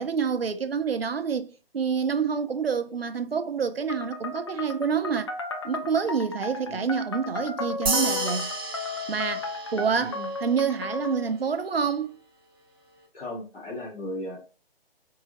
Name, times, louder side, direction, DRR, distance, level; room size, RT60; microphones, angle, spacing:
voice 1, 0.0-5.3 5.6-8.5 9.1-12.2, right 6 dB, 75° right, 0.6 m, -27 dB
sound 1, 3.9-11.3, left 3 dB, 30° left, 0.4 m, -35 dB
sound 2, 7.9-10.6, right 3 dB, 25° right, 0.6 m, -31 dB
voice 2, 10.0-10.3 13.1-14.4, left 1 dB, 80° left, 2.2 m, -36 dB
4.7 x 2.7 x 3.1 m
figure-of-eight pair, 140°, 30 cm